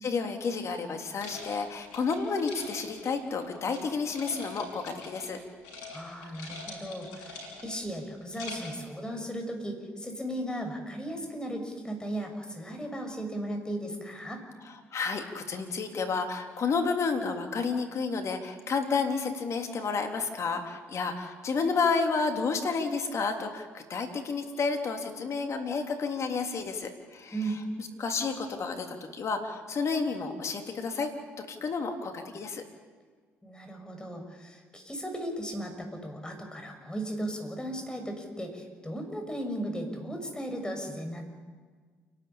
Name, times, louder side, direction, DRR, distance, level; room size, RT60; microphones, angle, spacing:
voice 1, 0.0-5.4 14.9-27.4 27.8-31.1 31.4-32.6, left 4 dB, 50° left, 5 dB, 3.5 m, -31 dB
sound 1, 1.2-3.8 4.1-5.4 5.6-6.0 6.2-7.8 8.2-8.8, left 3 dB, 80° left, 6.5 m, -43 dB
voice 2, 5.9-14.4 27.3-27.6 33.4-41.2, right 1 dB, 15° left, 4 dB, 6.6 m, -36 dB
28.5 x 12.5 x 9.0 m, 1.5 s
hypercardioid pair, 60°, 6 cm